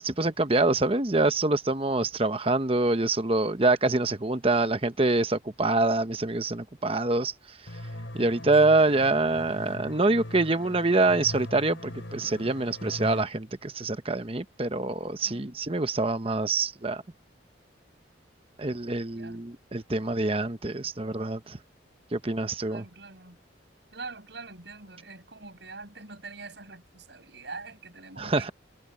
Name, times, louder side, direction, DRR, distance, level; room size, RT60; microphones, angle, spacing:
voice 1, 0.0-7.6 8.1-17.0 18.6-21.6 22.1-22.8 28.2-28.5, right 2 dB, 30° right, 1.0 m, -25 dB
sound 1, 7.7-13.2, left 1 dB, 80° left, 2.9 m, -40 dB
voice 2, 15.2-15.6 19.1-19.4 22.7-23.4 23.9-28.5, right 3 dB, 65° right, 6.5 m, -44 dB
head